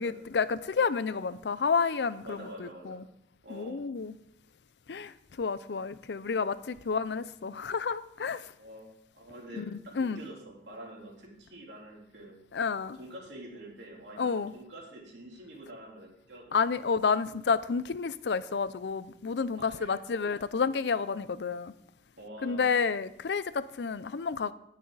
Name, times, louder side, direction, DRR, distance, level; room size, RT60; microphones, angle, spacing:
voice 1, 0.0-3.0 3.5-4.1 4.9-5.1 5.4-8.5 9.6-10.2 12.5-13.0 14.2-14.5 16.5-21.7 22.4-24.5, left 5 dB, 75° left, 0.5 m, -30 dB
voice 2, 2.2-3.0 3.4-3.8 8.6-12.4 13.0-16.4 16.8-16.9 19.6-19.9 22.2-22.7, right 1 dB, 85° right, 3.4 m, -46 dB
18.0 x 6.3 x 4.0 m
head